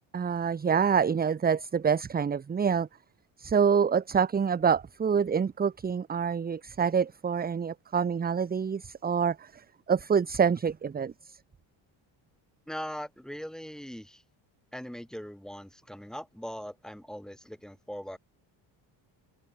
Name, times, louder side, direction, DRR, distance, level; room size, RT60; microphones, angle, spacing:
voice 1, 0.1-2.9 3.4-11.4, right 6 dB, 20° right, 0.8 m, -26 dB
voice 2, 12.7-14.2 14.7-18.2, equal, ahead, 6.4 m, -40 dB
cardioid pair, 135°, 47 cm